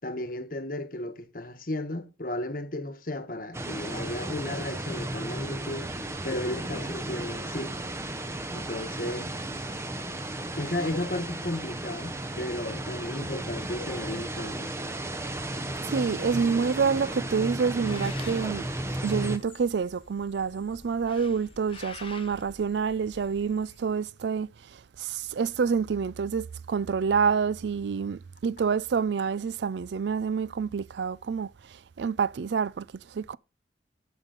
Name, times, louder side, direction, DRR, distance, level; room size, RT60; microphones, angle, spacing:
voice 1, 0.0-5.9 6.2-7.8 8.5-9.3 10.6-14.7, left 1 dB, 50° left, 1.2 m, -34 dB
sound 1, 3.5-19.4, right 1 dB, 15° right, 0.8 m, -34 dB
voice 2, 15.8-18.7 19.0-33.4, right 6 dB, 70° right, 0.4 m, -28 dB
Bird, 17.7-24.1, left 5 dB, 30° left, 0.8 m, -49 dB
14.5 x 5.4 x 3.9 m
head